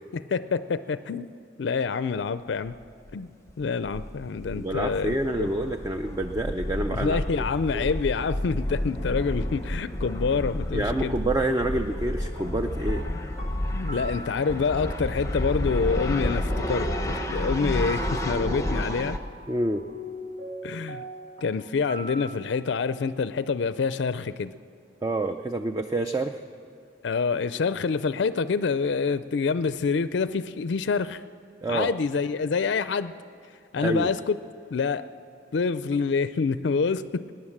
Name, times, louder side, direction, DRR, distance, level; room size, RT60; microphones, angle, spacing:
voice 1, 0.1-1.3 1.6-2.7 3.1-3.3 3.6-5.5 6.9-11.1 13.7-19.2 20.6-21.0 21.4-24.5 27.0-31.2 31.7-33.1 33.7-34.4 34.7-35.0 35.5-37.3, left 5 dB, 65° left, 13 dB, 0.4 m, -27 dB
sound 1, 2.7-2.8 3.1-3.2 3.5-19.2, left 1 dB, 15° left, 0.7 m, -30 dB
voice 2, 4.5-7.4 7.7-7.9 10.7-13.0 19.5-19.8 25.0-26.4 31.6-31.9 33.8-34.1, right 1 dB, 15° right, 6 dB, 0.4 m, -28 dB
sound 2, 11.8-22.5, right 1 dB, 55° right, 1.8 m, -42 dB
18.5 x 10.5 x 7.3 m, 2.6 s
head